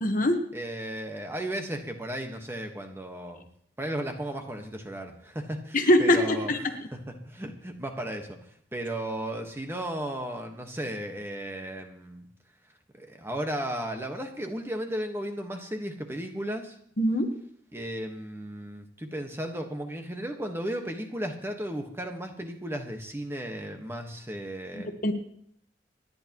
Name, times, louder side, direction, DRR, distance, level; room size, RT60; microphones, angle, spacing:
voice 1, 0.0-0.4 5.7-6.7 17.0-17.3 24.7-25.1, left 1 dB, 45° left, 6 dB, 1.3 m, -23 dB
voice 2, 0.5-3.5 3.8-6.5 6.9-8.4 8.7-12.3 13.0-16.8 17.7-24.9, right 1 dB, 15° right, 4 dB, 1.3 m, -35 dB
27.5 x 10.5 x 3.0 m, 0.67 s
head